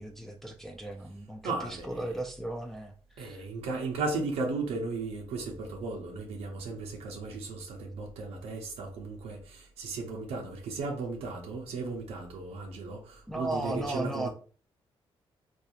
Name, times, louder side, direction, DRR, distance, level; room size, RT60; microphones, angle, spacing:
voice 1, 0.0-3.4 13.3-14.3, right 1 dB, 5° left, 0.4 m, -36 dB
voice 2, 1.4-1.9 3.2-14.3, right 3 dB, 90° right, 0.6 m, -35 dB
2.9 x 2.3 x 2.3 m
cardioid pair, 85°, 10 cm